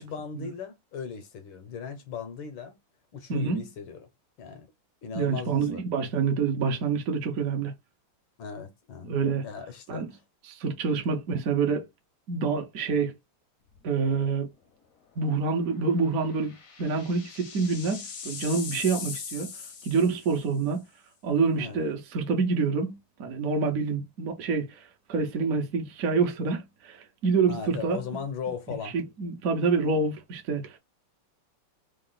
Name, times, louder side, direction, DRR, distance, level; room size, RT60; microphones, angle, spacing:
voice 1, 0.0-2.7 3.1-4.1 4.4-4.7 5.0-5.8 8.4-9.1 9.4-10.2 21.6-21.8 27.5-28.9, left 6 dB, 75° left, 1.5 m, -37 dB
voice 2, 3.3-3.6 5.2-7.7 9.1-9.4 9.9-10.1 10.6-11.8 12.3-13.1 13.8-14.5 15.2-19.5 19.8-20.8 21.2-24.7 25.1-28.0 28.9-30.7, right 4 dB, 55° right, 0.9 m, -27 dB
sound 1, 13.7-14.1 14.4-14.5 16.0-20.6, left 6 dB, 55° left, 1.0 m, -40 dB
3.7 x 2.4 x 3.8 m
omnidirectional pair, 2.4 m